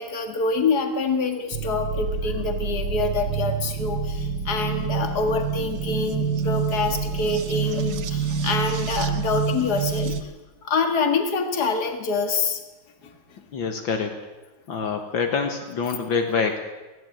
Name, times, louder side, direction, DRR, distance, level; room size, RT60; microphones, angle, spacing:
voice 1, 0.0-10.3 10.6-12.6 13.0-13.1, left 4 dB, 50° left, 6 dB, 2.4 m, -26 dB
sound 1, 1.5-10.2, right 7 dB, 60° right, 1.6 m, -27 dB
voice 2, 13.5-14.1 14.7-16.6, left 5 dB, 70° left, 4 dB, 2.2 m, -25 dB
18.5 x 16.0 x 9.2 m, 1.1 s
omnidirectional pair, 2.2 m